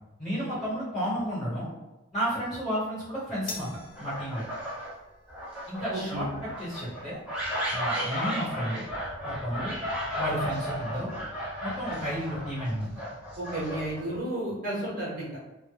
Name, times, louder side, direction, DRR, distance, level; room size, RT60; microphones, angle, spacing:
voice 1, 0.2-1.7 2.1-4.4 5.7-6.2 6.6-7.2 7.7-8.8 9.2-9.7 10.1-11.1 11.6-13.0, equal, 20° left, -10 dB, 1.1 m, -32 dB
sound 1, 3.5-10.0, left 3 dB, 40° left, 0.4 m, -48 dB
sound 2, 4.0-4.9 5.3-14.2, equal, 5° right, 0.5 m, -34 dB
voice 2, 5.9-6.3 13.4-15.3, right 1 dB, 45° right, -7 dB, 0.8 m, -32 dB
2.1 x 2.1 x 3.2 m, 1.0 s
head